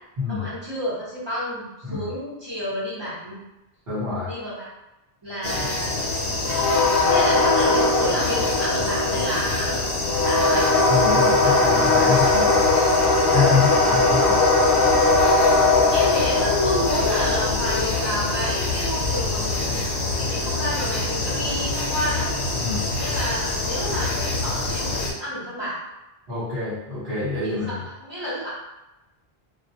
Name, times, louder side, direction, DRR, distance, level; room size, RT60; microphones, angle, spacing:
voice 1, 0.3-3.4 4.2-4.7 5.2-6.0 7.0-10.7 11.4-11.6 15.9-19.8 20.2-22.3 23.0-25.8 27.4-28.5, equal, 25° right, -10 dB, 0.8 m, -30 dB
voice 2, 3.9-4.3 10.9-12.8 13.3-14.4 22.5-22.8 26.3-27.8, left 4 dB, 65° right, -12 dB, 1.2 m, -26 dB
sound 1, 5.4-25.1, left 3 dB, 85° left, 0.9 m, -21 dB
2.2 x 2.1 x 2.7 m, 0.98 s
omnidirectional pair, 1.1 m